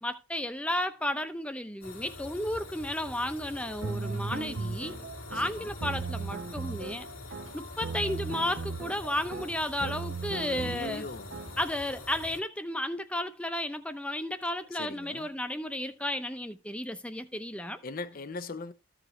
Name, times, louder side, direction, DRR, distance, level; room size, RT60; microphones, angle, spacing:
voice 1, 0.0-4.9 5.3-7.1 7.5-11.1 11.6-17.8, left 1 dB, 5° left, 0.7 m, -33 dB
sound 1, 1.8-12.4, left 2 dB, 90° left, 2.3 m, -45 dB
sound 2, 3.8-11.7, right 4 dB, 60° right, 0.6 m, -37 dB
voice 2, 10.4-11.4 14.7-15.3 17.8-18.7, left 3 dB, 45° left, 0.6 m, -40 dB
14.0 x 5.0 x 3.2 m
head